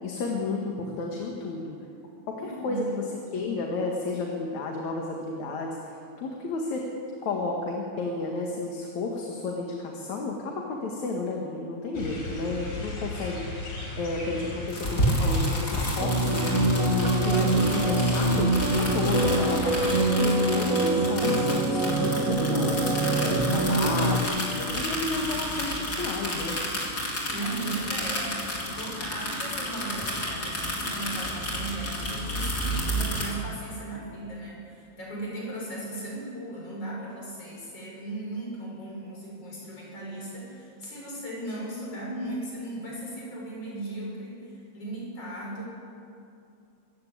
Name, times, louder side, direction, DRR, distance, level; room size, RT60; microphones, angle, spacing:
voice 1, 0.0-1.8 2.3-2.8 3.3-6.9 7.2-13.6 14.0-16.5 16.9-22.8 23.2-26.6, left 3 dB, 75° left, 0 dB, 3.2 m, -32 dB
voice 2, 2.4-3.0 27.3-45.6, right 1 dB, 55° left, -4 dB, 8.1 m, -37 dB
sound 1, 11.9-20.1, left 2 dB, 90° left, 6.2 m, -36 dB
sound 2, 14.7-33.2, equal, 30° left, 4.7 m, -31 dB
sound 3, 16.0-24.2, right 2 dB, 30° right, 2.0 m, -24 dB
26.0 x 15.0 x 8.6 m, 2.5 s
omnidirectional pair, 3.3 m